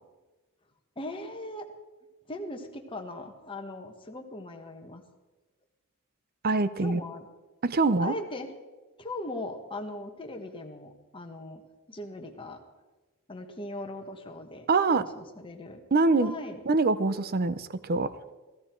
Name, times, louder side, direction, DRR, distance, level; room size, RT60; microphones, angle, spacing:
voice 1, 1.0-1.7 2.3-5.0 6.8-7.3 8.0-8.5 9.0-11.6 11.9-12.6 13.3-14.7 14.9-15.8 16.2-16.6, left 1 dB, 25° left, 3 dB, 1.3 m, -39 dB
voice 2, 6.4-7.0 7.6-8.1 14.7-15.1 15.9-16.3 16.7-18.1, right 3 dB, 45° right, 15 dB, 0.6 m, -24 dB
16.5 x 14.5 x 4.5 m, 1.2 s
head